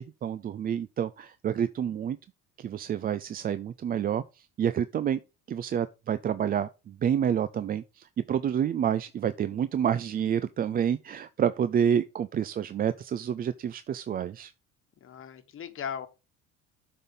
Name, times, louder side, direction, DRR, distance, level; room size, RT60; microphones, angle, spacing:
voice 1, 0.0-2.2 2.6-5.2 5.5-14.5, right 8 dB, 30° right, 0.4 m, -28 dB
voice 2, 15.0-16.1, left 8 dB, 40° left, 1.4 m, -37 dB
7.8 x 5.5 x 3.8 m
supercardioid pair, 95°, 32 cm